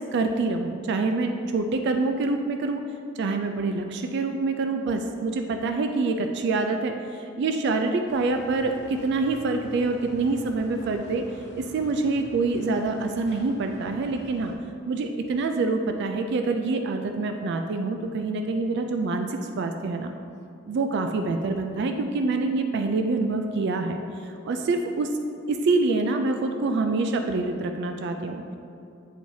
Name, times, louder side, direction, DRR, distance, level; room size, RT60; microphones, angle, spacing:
voice 1, 0.1-2.8 3.2-11.2 11.6-14.5 14.9-20.1 20.7-25.1 25.5-28.6, right 3 dB, 55° right, 5 dB, 0.3 m, -26 dB
sound 1, 8.1-14.5, equal, 55° left, 0.9 m, -46 dB
8.2 x 4.6 x 2.7 m, 2.6 s
head